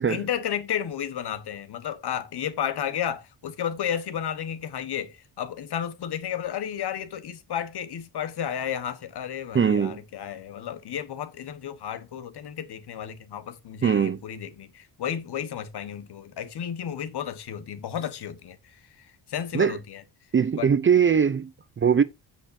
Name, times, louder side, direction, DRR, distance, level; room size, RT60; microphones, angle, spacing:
voice 1, 0.0-20.0 20.5-20.7, left 9 dB, 60° left, 1.3 m, -32 dB
voice 2, 9.5-10.0 13.8-14.2 19.5-19.8 20.3-22.0, right 7 dB, 30° right, 0.5 m, -21 dB
15.5 x 5.5 x 2.6 m
cardioid pair, 125°, 44 cm